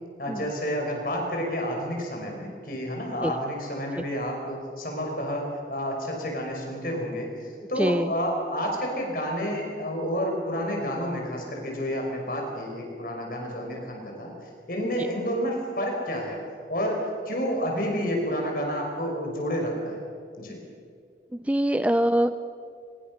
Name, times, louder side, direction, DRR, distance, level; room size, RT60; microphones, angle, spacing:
voice 1, 0.2-16.4 16.7-20.0 20.4-20.6, equal, 50° left, 1 dB, 6.0 m, -30 dB
voice 2, 21.3-22.4, right 1 dB, 10° right, 11 dB, 0.5 m, -23 dB
24.5 x 22.0 x 6.5 m, 2.2 s
head